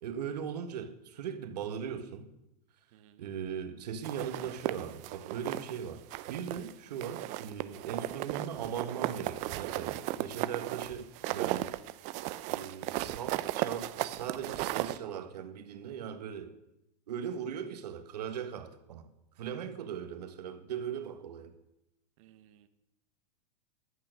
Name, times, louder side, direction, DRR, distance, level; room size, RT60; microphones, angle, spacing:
voice 1, 0.0-2.3 3.2-11.7 12.5-16.6 17.1-21.5, right 8 dB, 75° right, 1.5 m, -39 dB
voice 2, 2.9-3.2 22.2-22.7, right 11 dB, 50° right, 1.2 m, -60 dB
sound 1, 4.0-5.8 6.1-6.7 7.0-15.0, right 15 dB, 35° right, 0.6 m, -35 dB
12.0 x 8.6 x 6.5 m
supercardioid pair, 145°, 21 cm